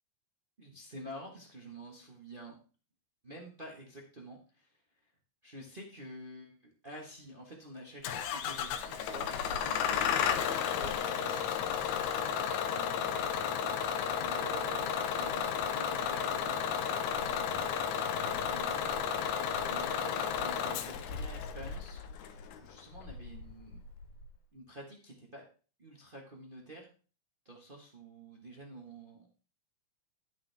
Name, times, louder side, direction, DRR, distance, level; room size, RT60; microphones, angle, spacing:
voice 1, 0.6-2.6 3.2-4.8 5.4-11.5 11.8-13.5 14.2-18.9 19.6-22.0 22.6-23.8 24.5-25.5 25.8-26.9 27.4-29.3, right 1 dB, 40° right, 0 dB, 0.7 m, -49 dB
Bus / Engine starting, 8.0-24.3, left 7 dB, 75° left, 2.1 m, -33 dB
11.0 x 7.3 x 3.4 m, 0.38 s
omnidirectional pair, 3.5 m